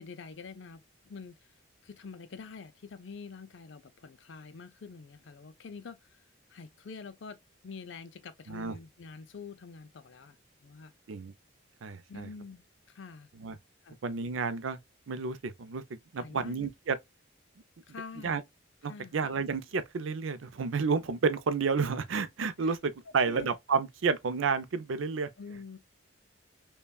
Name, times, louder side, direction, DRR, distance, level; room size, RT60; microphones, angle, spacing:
voice 1, 0.0-1.4 1.8-6.2 6.5-7.4 7.6-10.4 10.6-10.9 12.1-13.3 13.8-14.0 16.2-16.7 17.9-18.4 18.8-19.1 22.6-22.8 23.2-23.5 25.4-25.8, left 4 dB, 65° left, 0.5 m, -46 dB
voice 2, 11.8-12.3 13.4-13.6 14.0-14.8 15.1-15.8 16.1-17.0 18.2-18.4 18.8-25.3, right 5 dB, 80° right, 0.5 m, -30 dB
5.4 x 2.3 x 2.2 m
head